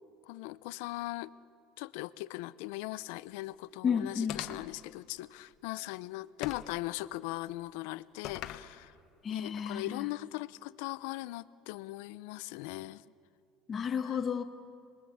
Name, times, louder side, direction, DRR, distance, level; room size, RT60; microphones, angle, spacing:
voice 1, 0.3-1.3 1.8-8.9 9.3-13.0 14.0-14.2, left 18 dB, 85° left, 16 dB, 0.6 m, -39 dB
voice 2, 3.8-4.4 9.2-10.1 13.7-14.4, left 7 dB, 25° left, 6 dB, 1.5 m, -32 dB
sound 1, 4.3-4.8 6.4-6.8 8.2-8.7, left 12 dB, 50° left, 1.2 m, -40 dB
29.5 x 21.5 x 8.6 m, 2.6 s
cardioid pair, 165°, 0 cm